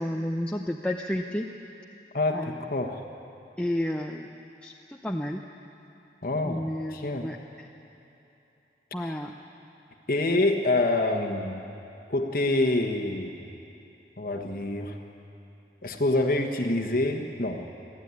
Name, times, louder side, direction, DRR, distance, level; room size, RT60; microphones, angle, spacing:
voice 1, 0.0-1.5 2.3-2.6 3.6-4.3 4.6-5.4 6.4-7.7 8.9-9.3, left 1 dB, 5° left, 1 dB, 0.6 m, -31 dB
voice 2, 2.1-3.0 6.2-6.6 6.9-7.3 9.0-9.2 10.1-11.6 12.1-13.3 14.2-15.0 15.8-17.6, left 2 dB, 50° left, 3 dB, 1.3 m, -26 dB
24.5 x 14.5 x 9.6 m, 2.9 s
head